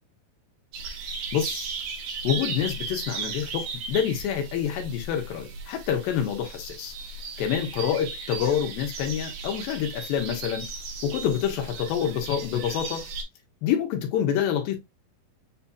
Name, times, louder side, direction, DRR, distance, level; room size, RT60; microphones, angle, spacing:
sound 1, 0.7-13.2, right 4 dB, 65° right, 2.3 m, -36 dB
voice 1, 1.3-1.7 2.2-6.9 7.4-10.7 11.0-13.1 13.6-14.8, left 9 dB, 85° left, 2.8 m, -27 dB
7.8 x 2.9 x 2.3 m
omnidirectional pair, 3.9 m